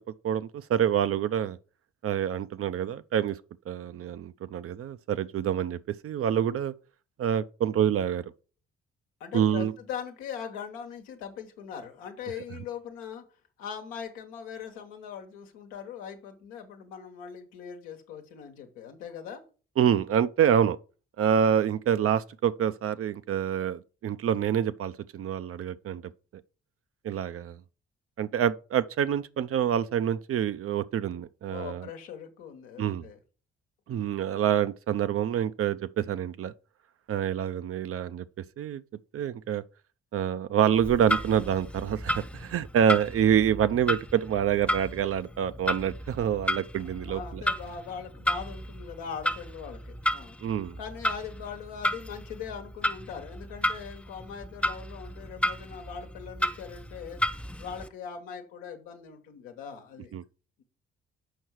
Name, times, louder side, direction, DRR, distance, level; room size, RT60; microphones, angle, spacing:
voice 1, 0.2-1.6 2.0-3.4 3.7-6.7 7.2-8.3 9.3-9.7 19.8-20.8 21.2-26.0 27.0-27.6 28.2-31.9 32.8-33.1 33.9-36.5 37.1-38.2 38.6-38.8 39.1-39.6 40.1-47.4 50.4-50.8 60.1-60.2, right 9 dB, 45° right, 0.5 m, -27 dB
voice 2, 9.2-13.2 13.6-19.4 31.5-33.2 46.8-50.4 50.8-57.2 57.6-60.1, left 7 dB, 80° left, 1.1 m, -41 dB
Clock, 40.7-57.9, left 1 dB, 5° left, 0.5 m, -33 dB
6.5 x 5.4 x 4.6 m
hypercardioid pair, 45°, 31 cm